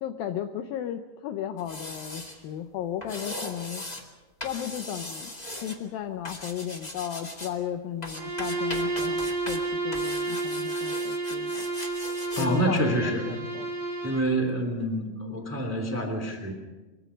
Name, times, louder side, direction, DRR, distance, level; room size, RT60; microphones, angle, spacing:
voice 1, 0.0-3.8 4.4-5.3 5.6-11.5 12.4-13.7, left 10 dB, 75° left, 8 dB, 2.2 m, -35 dB
sound 1, 1.6-2.4 3.0-4.0 4.4-5.8 6.2-7.5 8.0-9.6 9.9-12.5 12.8-12.9, left 1 dB, 40° left, 0.5 m, -39 dB
Bowed string instrument, 8.1-14.3, right 3 dB, 25° right, 4.5 m, -31 dB
voice 2, 12.3-13.3 14.0-16.5, right 1 dB, 5° right, 5 dB, 1.9 m, -27 dB
23.5 x 23.0 x 5.2 m, 1.2 s
omnidirectional pair, 5.0 m